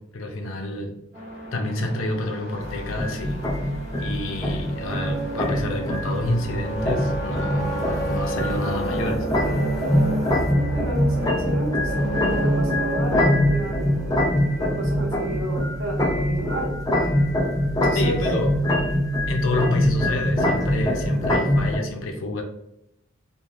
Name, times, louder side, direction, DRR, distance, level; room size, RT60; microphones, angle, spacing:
voice 1, 0.1-0.9 1.5-3.4 4.0-9.3 17.9-18.5 19.3-22.4, left 2 dB, 75° left, 3 dB, 0.5 m, -28 dB
sound 1, 1.1-9.1, left 1 dB, 15° right, 1.3 m, -35 dB
sound 2, 2.6-21.8, left 1 dB, 20° left, 0.4 m, -24 dB
sound 3, 4.0-15.6, right 2 dB, ahead, 1.1 m, -30 dB
voice 2, 10.5-13.9 14.6-16.7 17.8-18.1, right 1 dB, 75° right, -2 dB, 0.8 m, -31 dB
3.1 x 2.2 x 2.5 m, 0.81 s
head